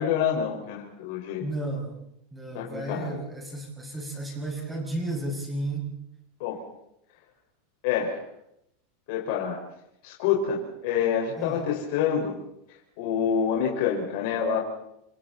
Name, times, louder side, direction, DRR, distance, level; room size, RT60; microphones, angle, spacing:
voice 1, 0.0-1.4 2.5-3.2 6.4-6.6 7.8-8.2 9.1-9.6 10.0-12.4 13.0-14.6, left 8 dB, 55° left, -1 dB, 4.9 m, -27 dB
voice 2, 1.4-2.0 2.3-5.9 11.4-11.6, right 2 dB, 5° right, 1 dB, 6.2 m, -33 dB
28.5 x 27.0 x 4.1 m, 0.78 s
supercardioid pair, 165°, 0 cm